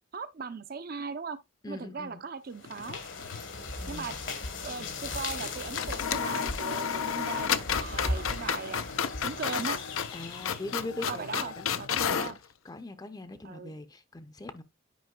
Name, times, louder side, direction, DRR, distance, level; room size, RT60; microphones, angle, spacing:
voice 1, 0.1-1.4 1.7-3.0 3.9-4.2 4.6-8.8 9.2-9.8 11.1-12.4 13.4-13.7, right 5 dB, 50° right, 0.5 m, -38 dB
voice 2, 1.6-2.2 3.8-4.2 10.1-12.3 12.6-14.6, left 2 dB, 20° left, 0.5 m, -41 dB
sound 1, 2.5-10.9, left 3 dB, 70° left, 1.4 m, -38 dB
sound 2, 2.7-3.5 3.7-3.8 5.3-5.5 5.8-12.4, left 8 dB, 85° left, 0.5 m, -32 dB
sound 3, 7.7-11.5 11.9-12.4, right 4 dB, 85° right, 1.8 m, -52 dB
9.2 x 5.1 x 2.3 m
head